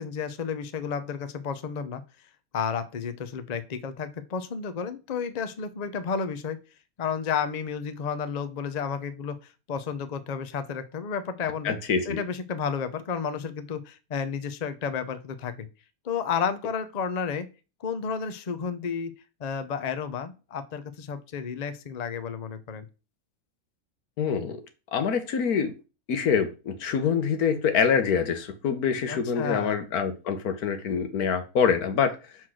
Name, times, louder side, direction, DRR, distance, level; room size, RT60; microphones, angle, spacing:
voice 1, 0.0-2.0 2.5-6.6 7.0-11.8 12.0-15.7 16.0-17.5 17.8-19.1 19.4-22.9 29.1-29.8, left 6 dB, 40° left, 10 dB, 0.6 m, -32 dB
voice 2, 11.6-12.2 24.2-24.6 24.9-25.7 26.1-32.2, left 6 dB, 90° left, 8 dB, 1.5 m, -25 dB
5.9 x 4.6 x 6.3 m, 0.32 s
omnidirectional pair, 1.5 m